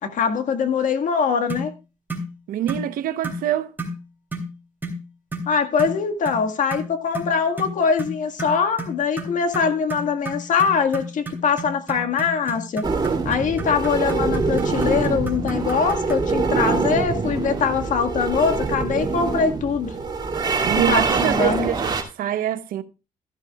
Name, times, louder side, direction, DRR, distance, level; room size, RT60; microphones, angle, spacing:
voice 1, 0.0-1.7 5.5-12.9 13.3-19.9 20.9-21.7, left 6 dB, 65° left, 1.7 m, -22 dB
sound 1, 1.5-1.7 2.1-2.3 2.7-2.9 3.2-3.4 3.8-4.0 4.3-4.5 4.8-5.0 5.3-5.5 5.8-6.0 6.3-6.4 6.7-16.3, right 1 dB, 15° right, 3.2 m, -32 dB
voice 2, 2.5-3.7 20.6-22.8, right 11 dB, 85° right, 0.9 m, -25 dB
sound 2, 12.8-22.0, right 4 dB, 30° right, 2.3 m, -24 dB
13.5 x 11.5 x 2.3 m
cardioid pair, 110°, 14 cm